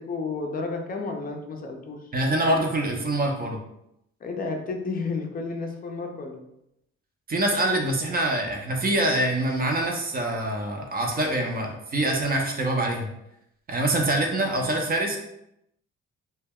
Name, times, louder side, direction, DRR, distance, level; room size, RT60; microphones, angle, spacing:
voice 1, 0.0-2.0 4.2-6.4, left 4 dB, 30° left, 2 dB, 0.5 m, -31 dB
voice 2, 2.1-3.6 7.3-13.1 13.7-15.2, right 1 dB, 30° right, 2 dB, 0.6 m, -25 dB
2.2 x 2.1 x 3.5 m, 0.81 s
cardioid pair, 90°, 30 cm